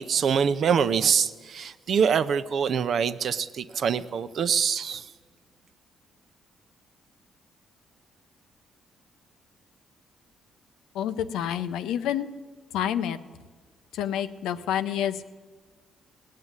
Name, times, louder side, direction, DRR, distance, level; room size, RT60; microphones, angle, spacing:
voice 1, 0.0-5.0, right 7 dB, 60° right, 0.6 m, -24 dB
voice 2, 10.9-12.3 12.7-13.2 13.9-15.2, left 10 dB, 90° left, 0.6 m, -28 dB
17.5 x 7.6 x 9.7 m
cardioid pair, 90°, 0 cm